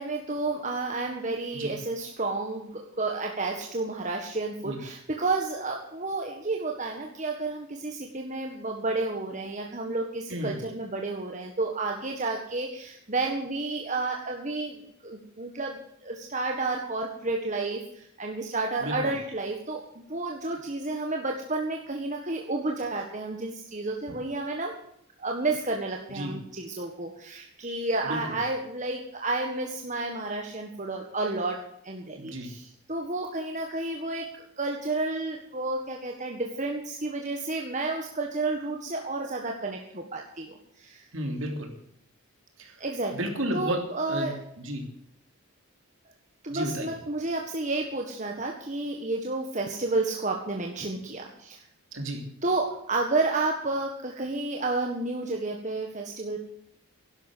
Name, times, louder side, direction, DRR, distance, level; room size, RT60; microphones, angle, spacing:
voice 1, 0.0-24.7 25.2-34.3 34.6-41.0 42.8-43.1 43.5-44.4 46.4-51.6 52.4-56.4, right 3 dB, 35° right, 1 dB, 1.6 m, -31 dB
voice 2, 10.3-10.6 18.8-19.1 26.1-26.4 28.0-28.4 32.1-32.5 41.1-41.7 42.6-42.8 43.1-44.9 46.5-46.9 51.9-52.2, right 1 dB, 60° right, 3 dB, 3.3 m, -33 dB
12.0 x 11.5 x 7.5 m, 0.71 s
head